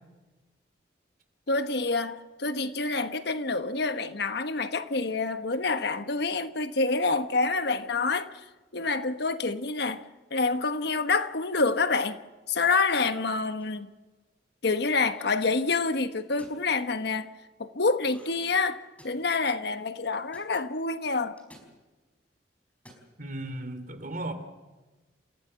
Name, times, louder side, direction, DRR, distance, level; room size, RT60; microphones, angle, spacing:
voice 1, 1.5-8.4 8.7-10.0 10.3-12.2 12.5-13.9 14.6-17.3 17.6-21.4, left 3 dB, 70° left, 1.2 m, -27 dB
sound 1, 13.6-13.9 14.8-15.5 16.2-16.6 18.0-18.5 18.7-19.4 20.3-20.5 21.4-21.7 22.7-23.1, equal, 10° left, 4.9 m, -53 dB
voice 2, 23.2-24.3, right 1 dB, 50° right, 3.0 m, -35 dB
28.5 x 15.5 x 7.6 m
head